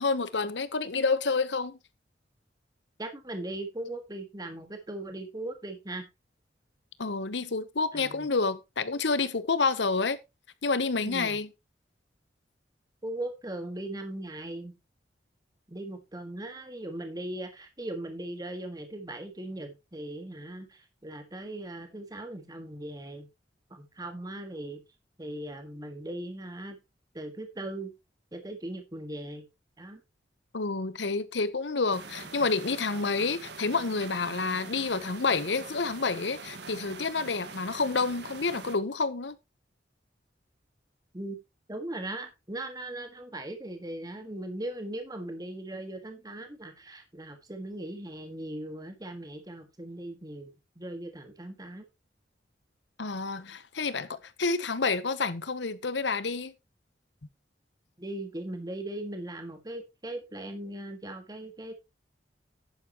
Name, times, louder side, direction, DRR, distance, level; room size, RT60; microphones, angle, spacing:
voice 1, 0.0-1.8 7.0-10.2 10.6-11.5 30.5-39.4 53.0-56.5, left 4 dB, 80° left, 1.0 m, -29 dB
voice 2, 3.0-6.1 7.9-8.3 11.0-11.4 13.0-14.7 15.7-23.3 23.7-24.8 25.2-26.8 27.1-27.9 28.3-29.4 29.8-30.0 41.1-41.4 41.7-50.5 50.8-51.8 58.0-61.7, right 1 dB, 20° right, 1.7 m, -39 dB
sound 1, 31.9-38.8, right 4 dB, 70° right, 1.7 m, -44 dB
10.5 x 9.7 x 3.0 m
head